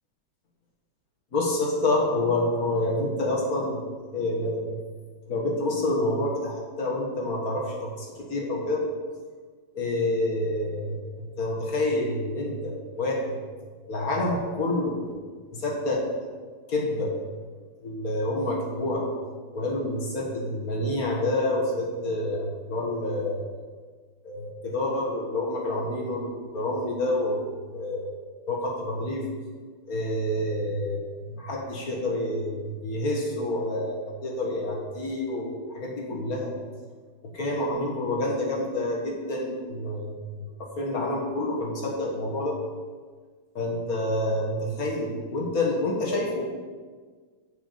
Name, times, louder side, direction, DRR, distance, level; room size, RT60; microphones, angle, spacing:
voice 1, 1.3-3.8 4.1-4.8 5.3-8.9 9.7-13.4 13.8-15.1 15.5-16.1 16.7-17.2 17.8-19.1 19.5-23.4 24.2-28.2 28.5-29.2 29.9-36.5 37.2-42.6 43.6-46.4, left 1 dB, 45° left, -2 dB, 2.0 m, -28 dB
7.1 x 5.7 x 6.9 m, 1.5 s
omnidirectional pair, 2.3 m